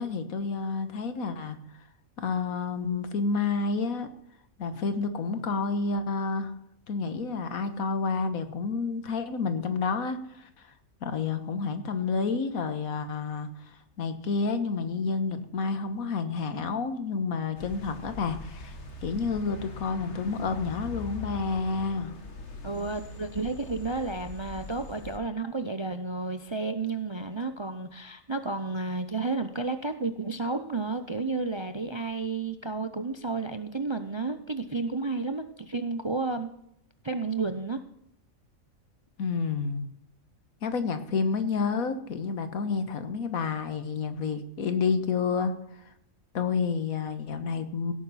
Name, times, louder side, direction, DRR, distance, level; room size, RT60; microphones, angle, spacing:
voice 1, 0.0-1.6 2.2-4.1 4.6-6.5 6.9-10.5 11.0-13.5 14.0-22.1 39.2-39.8 40.6-45.5 46.3-47.9, left 4 dB, 85° left, 9 dB, 1.6 m, -29 dB
sound 1, 17.6-25.2, left 3 dB, 55° left, 1.7 m, -42 dB
voice 2, 22.6-36.5 37.0-37.8, right 3 dB, 35° right, 9 dB, 0.5 m, -31 dB
17.0 x 8.9 x 4.1 m, 0.76 s
omnidirectional pair, 1.4 m